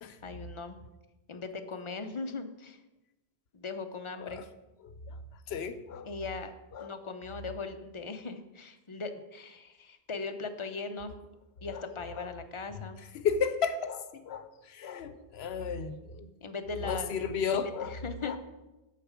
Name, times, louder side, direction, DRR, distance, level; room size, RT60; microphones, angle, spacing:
voice 1, 0.2-0.8 1.3-2.8 3.5-4.4 6.1-6.5 6.8-11.1 11.6-13.0 16.4-17.1 17.5-18.4, left 4 dB, 40° left, 7 dB, 0.5 m, -39 dB
voice 2, 5.5-6.1 6.7-6.9 11.7-11.8 12.2-12.3 13.1-16.3 16.8-17.9 18.2-18.4, left 6 dB, 80° left, 11 dB, 0.9 m, -33 dB
6.5 x 6.5 x 4.9 m, 1.0 s
omnidirectional pair, 1.1 m